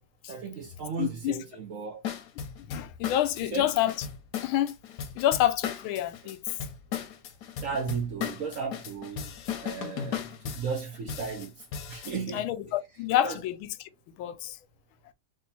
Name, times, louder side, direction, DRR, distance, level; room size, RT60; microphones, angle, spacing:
voice 1, 0.3-2.0 3.5-3.7 7.6-12.4 13.2-13.4, right 5 dB, 60° right, 0.8 m, -35 dB
voice 2, 1.0-1.4 2.7-3.9 4.4-4.8 5.2-6.4 12.3-13.9 14.2-14.6, left 12 dB, 90° left, 1.4 m, -28 dB
sound 1, 2.0-12.2, left 8 dB, 65° left, 1.2 m, -36 dB
3.7 x 3.1 x 4.0 m
omnidirectional pair, 2.2 m